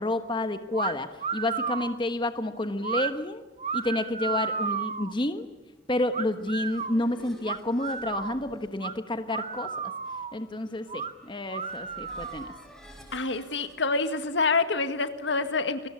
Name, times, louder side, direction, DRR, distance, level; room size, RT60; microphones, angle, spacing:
voice 1, 0.0-3.4 3.7-5.5 5.9-9.9 10.3-12.5, left 1 dB, 25° left, 8 dB, 1.2 m, -30 dB
sound 1, 0.7-0.9 1.2-2.0 2.8-3.1 3.6-5.1 6.1-6.9 7.4-8.4 8.8-8.9 9.3-10.3 10.9-11.1 11.5-12.6, right 6 dB, 35° right, 0.9 m, -33 dB
sound 2, 6.3-13.8, equal, ahead, 6.5 m, -52 dB
voice 2, 13.1-15.9, left 3 dB, 70° left, 9 dB, 1.9 m, -27 dB
29.0 x 22.0 x 8.7 m, 1.1 s
head